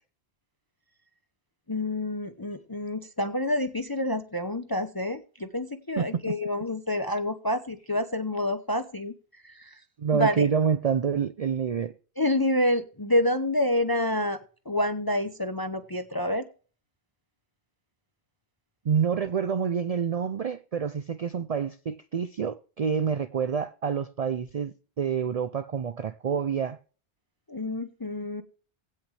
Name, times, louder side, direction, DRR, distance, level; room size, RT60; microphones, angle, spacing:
voice 1, 1.7-9.1 9.4-9.8 10.1-10.5 12.2-14.4 14.7-16.5 27.5-28.4, left 1 dB, 25° left, 0.7 m, -28 dB
voice 2, 6.0-6.3 10.0-11.9 18.8-26.8, right 7 dB, 50° right, 0.4 m, -27 dB
16.5 x 6.6 x 3.3 m
omnidirectional pair, 1.1 m